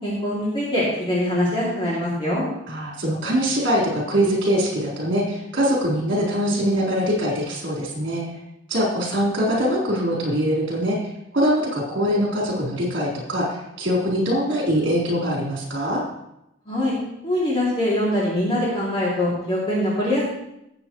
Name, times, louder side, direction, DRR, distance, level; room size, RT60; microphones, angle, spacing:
voice 1, 0.0-2.5 16.7-17.0 17.2-20.2, left 1 dB, 25° left, -8 dB, 2.7 m, -23 dB
voice 2, 2.7-8.2 8.7-11.0 11.3-16.0, equal, 60° right, -4 dB, 4.0 m, -23 dB
17.5 x 7.7 x 3.1 m, 0.84 s
head